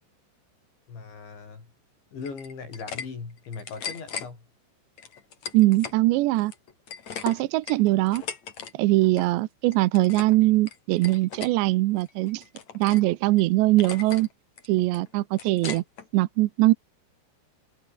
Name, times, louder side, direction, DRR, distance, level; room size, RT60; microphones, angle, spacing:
voice 1, 0.9-1.7 2.1-4.5, left 5 dB, 65° left, 9.4 m, -39 dB
sound 1, 2.2-3.1 3.4-4.3 5.0-6.0 6.3-8.7 9.0-9.3 9.7-10.4 10.7-11.5 12.0-13.1 13.4-13.5 13.8-14.3 14.6-16.1, left 7 dB, 40° left, 3.4 m, -38 dB
voice 2, 5.5-6.5 7.2-8.2 8.7-12.4 12.7-14.3 14.7-15.8 16.1-16.7, right 18 dB, 75° right, 2.8 m, -22 dB
omnidirectional pair, 5.6 m